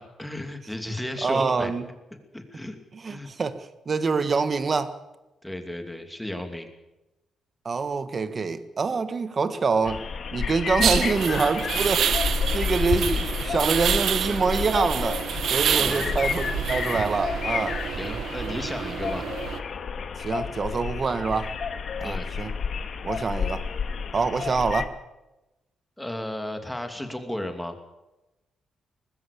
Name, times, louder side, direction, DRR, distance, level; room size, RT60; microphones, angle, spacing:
voice 1, 0.0-1.7 2.3-2.8 3.1-3.3 5.4-6.7 15.7-16.2 17.9-19.3 22.0-22.4 26.0-27.8, left 1 dB, 5° left, 2.7 m, -34 dB
voice 2, 1.2-1.8 2.9-4.9 7.6-10.0 10.3-15.2 15.5-17.8 20.2-21.5 22.0-22.5 23.0-23.7 24.1-24.9, right 4 dB, 35° right, 1.6 m, -26 dB
sound 1, 9.8-24.8, left 6 dB, 55° left, 1.9 m, -30 dB
sound 2, 10.8-19.6, right 8 dB, 65° right, 1.3 m, -28 dB
19.5 x 15.5 x 8.6 m
cardioid pair, 110°, 0 cm